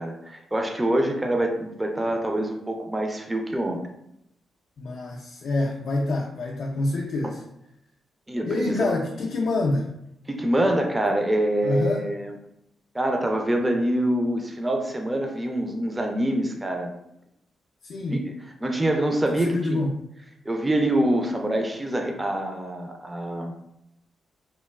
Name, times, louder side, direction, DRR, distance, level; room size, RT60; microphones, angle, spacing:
voice 1, 0.0-3.8 8.3-8.9 10.3-12.3 12.9-16.9 18.1-18.2 18.6-19.8 20.5-23.5, right 1 dB, 20° right, 3 dB, 0.4 m, -25 dB
voice 2, 4.8-7.4 8.5-9.9 11.6-12.0 17.8-18.2 19.3-19.9, left 2 dB, 65° left, -1 dB, 0.3 m, -27 dB
3.0 x 2.1 x 2.3 m, 0.80 s
supercardioid pair, 50°, 0 cm